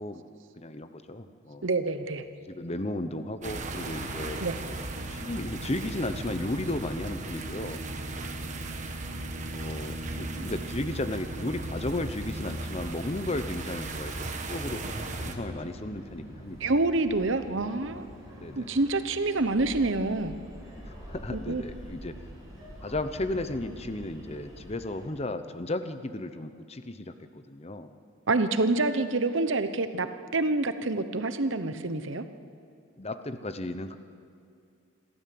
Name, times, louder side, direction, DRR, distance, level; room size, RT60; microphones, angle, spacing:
voice 1, 0.0-1.6 2.5-4.8 5.1-7.8 9.5-16.7 18.4-18.8 20.8-22.1 22.8-27.1 27.5-27.9 33.0-34.0, left 1 dB, 30° left, 10 dB, 0.8 m, -34 dB
voice 2, 1.6-2.3 4.4-4.5 16.6-18.0 18.5-20.3 21.3-21.6 28.3-30.1 30.3-32.2, right 2 dB, 60° right, 10 dB, 0.9 m, -27 dB
sound 1, 1.8-12.7, right 1 dB, 85° right, 1.7 m, -48 dB
sound 2, 3.4-15.3, right 2 dB, 35° right, 1.4 m, -36 dB
sound 3, 15.0-25.1, equal, 15° right, 7.5 m, -45 dB
27.0 x 13.0 x 7.8 m, 2.3 s
head